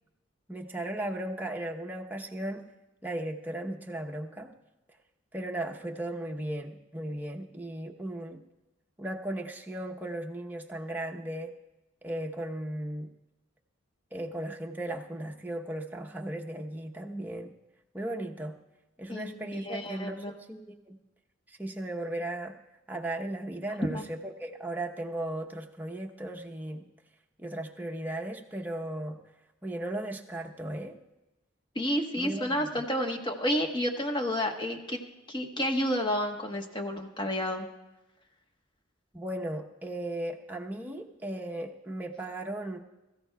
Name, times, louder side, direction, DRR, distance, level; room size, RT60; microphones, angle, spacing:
voice 1, 0.5-2.6 3.0-4.5 5.3-8.4 9.0-11.5 12.0-13.1 14.1-17.5 17.9-18.5 19.0-21.0 21.5-22.6 22.9-26.8 27.4-29.2 29.6-31.0 32.2-32.7 39.1-42.8, right 1 dB, 10° right, 1 dB, 0.8 m, -36 dB
voice 2, 19.1-20.3 23.8-24.0 31.7-35.0 35.3-37.7, equal, 25° left, 2 dB, 1.2 m, -30 dB
22.0 x 14.0 x 2.3 m, 1.0 s
head